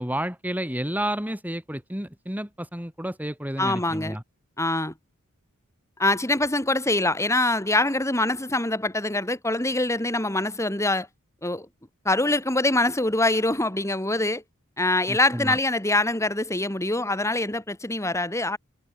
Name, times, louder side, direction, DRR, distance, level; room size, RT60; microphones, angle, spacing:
voice 1, 0.0-4.2 15.1-15.6, right 1 dB, 10° right, 4.6 m, -31 dB
voice 2, 3.6-4.2 4.6-4.9 6.0-11.1 11.4-11.7 12.0-14.4 14.8-18.6, left 2 dB, 15° left, 4.8 m, -24 dB
head